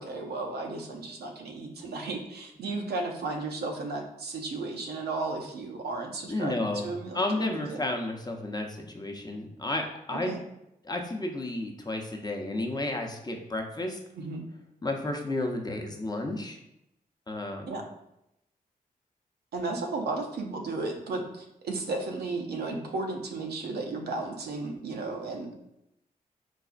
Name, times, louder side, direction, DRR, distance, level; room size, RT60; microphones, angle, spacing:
voice 1, 0.0-7.8 10.3-10.4 14.1-14.4 17.7-17.8 19.5-25.6, right 3 dB, 85° right, 2 dB, 0.5 m, -34 dB
voice 2, 6.3-6.9 7.1-10.3 10.8-14.0 14.8-16.6 17.3-17.7, left 2 dB, 25° left, 2 dB, 0.6 m, -32 dB
4.0 x 2.4 x 2.4 m, 0.83 s
cardioid pair, 50°, 16 cm